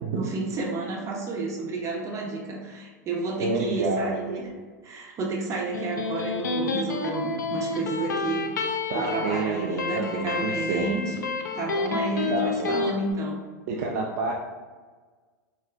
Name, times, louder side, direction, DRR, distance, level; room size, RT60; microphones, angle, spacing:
voice 1, 0.0-4.5 4.8-8.5 8.9-13.5, right 3 dB, 30° right, -1 dB, 0.8 m, -31 dB
voice 2, 3.4-4.5 8.9-10.9 12.3-12.8 13.7-14.3, right 3 dB, 60° right, -1 dB, 0.4 m, -28 dB
Electric guitar, 5.5-12.9, left 4 dB, 85° left, 0.4 m, -30 dB
4.2 x 2.1 x 2.5 m, 1.4 s
hypercardioid pair, 95°, 10 cm